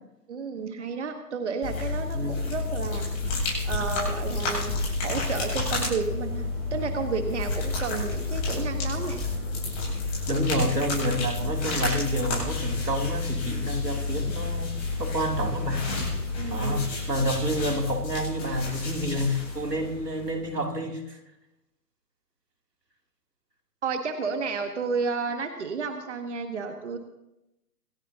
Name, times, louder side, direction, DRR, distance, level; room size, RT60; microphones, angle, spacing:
voice 1, 0.3-9.2 16.3-16.9 23.8-27.0, right 5 dB, 45° right, 5 dB, 1.5 m, -32 dB
sound 1, 1.6-20.5, left 3 dB, 20° left, 7.9 m, -30 dB
voice 2, 10.3-14.7 15.0-15.9 16.5-21.2, equal, 80° right, 2 dB, 3.2 m, -28 dB
26.5 x 15.0 x 2.9 m, 0.89 s
figure-of-eight pair, 150°, 48 cm